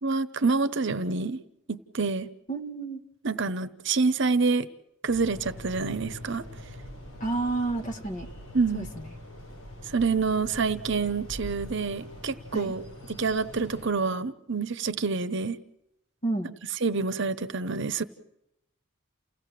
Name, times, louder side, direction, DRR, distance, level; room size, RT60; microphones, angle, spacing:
voice 1, 0.0-1.4 1.7-2.3 3.2-4.7 5.0-6.4 8.5-8.9 9.9-12.8 13.1-15.6 16.8-18.0, right 4 dB, 60° right, 0.9 m, -27 dB
voice 2, 2.5-3.0 7.2-8.3 8.7-9.1 12.5-12.7 16.2-16.5, right 3 dB, 40° left, 2.0 m, -30 dB
sound 1, 5.1-13.9, left 1 dB, 90° left, 7.4 m, -43 dB
29.0 x 16.5 x 7.6 m
head